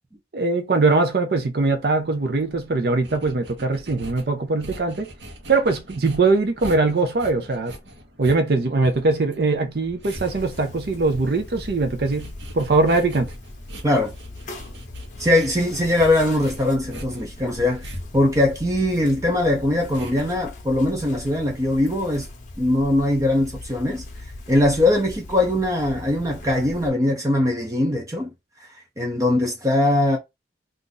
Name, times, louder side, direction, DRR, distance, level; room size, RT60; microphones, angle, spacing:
voice 1, 0.3-5.1 5.5-7.7 8.2-13.3, right 3 dB, 60° right, 0.6 m, -21 dB
sound 1, 1.6-20.2, equal, 85° right, 1.0 m, -42 dB
sound 2, 10.2-26.9, left 2 dB, 45° left, 0.7 m, -39 dB
voice 2, 15.2-22.3 22.6-24.0 24.5-28.3 28.6-28.7 29.0-30.2, left 1 dB, 20° right, 0.6 m, -21 dB
2.5 x 2.5 x 3.8 m
head